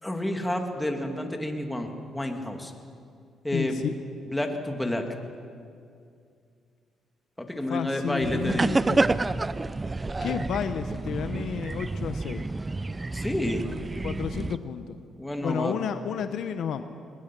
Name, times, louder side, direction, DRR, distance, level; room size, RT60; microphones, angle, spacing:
voice 1, 0.0-2.7 3.4-3.8 4.3-5.1 7.4-8.7 13.1-13.7 15.2-15.7, left 1 dB, 10° left, 3 dB, 2.4 m, -29 dB
voice 2, 3.5-3.9 7.7-9.1 10.2-12.5 14.0-15.0 15.4-16.8, left 8 dB, 70° left, 9 dB, 0.9 m, -31 dB
sound 1, 8.2-14.6, right 3 dB, 20° right, 0.5 m, -29 dB
22.0 x 20.0 x 6.1 m, 2.3 s
cardioid pair, 90°, 0 cm